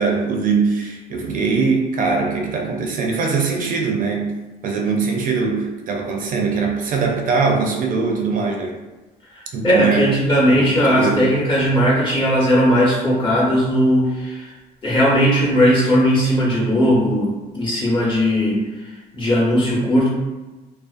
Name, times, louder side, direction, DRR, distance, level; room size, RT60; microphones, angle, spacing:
voice 1, 0.0-4.4 4.6-8.8 9.5-10.1 10.5-11.3, right 4 dB, 55° right, 1 dB, 0.4 m, -21 dB
voice 2, 9.3-14.5 14.8-20.1, equal, 30° left, -5 dB, 1.0 m, -18 dB
2.4 x 2.2 x 2.4 m, 1.1 s
cardioid pair, 110°, 17 cm